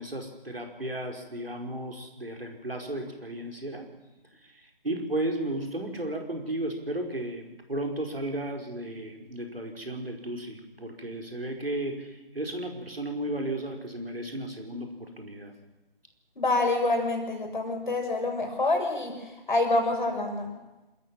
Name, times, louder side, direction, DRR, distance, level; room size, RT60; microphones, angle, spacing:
voice 1, 0.0-3.9 4.4-15.5, right 1 dB, 75° right, 3 dB, 5.0 m, -34 dB
voice 2, 16.4-20.5, left 2 dB, 55° left, 3 dB, 6.1 m, -27 dB
28.0 x 14.5 x 7.4 m, 1.1 s
figure-of-eight pair, 155°, 29 cm